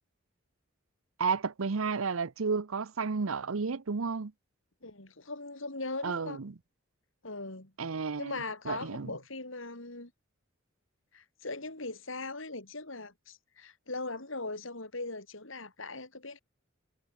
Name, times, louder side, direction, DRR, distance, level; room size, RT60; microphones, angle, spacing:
voice 1, 1.2-4.3 6.0-6.5 7.8-8.3 8.7-9.1, right 5 dB, 75° right, 0.7 m, -32 dB
voice 2, 4.8-6.4 7.2-7.7 8.2-10.1 11.1-16.4, left 3 dB, 65° left, 4.5 m, -40 dB
head